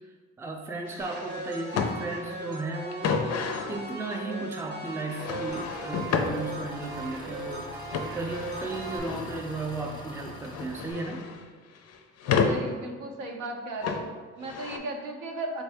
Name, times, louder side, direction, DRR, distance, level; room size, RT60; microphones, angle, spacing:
voice 1, 0.4-3.2 3.7-7.7 8.1-11.3, right 3 dB, 10° right, 2 dB, 0.3 m, -35 dB
sound 1, 0.9-1.9 2.9-3.8 5.1-6.3 7.9-9.3 10.2-11.4 11.7-12.6 13.8-14.0 14.4-14.8, left 5 dB, 55° left, 0.4 m, -30 dB
sound 2, 1.0-9.0, right 2 dB, 35° right, 0.7 m, -39 dB
Engine, 5.5-10.9, left 1 dB, 15° left, 0.7 m, -44 dB
voice 2, 12.5-15.6, right 2 dB, 75° right, 2 dB, 0.6 m, -36 dB
3.5 x 2.6 x 3.4 m, 1.5 s
cardioid pair, 90°, 30 cm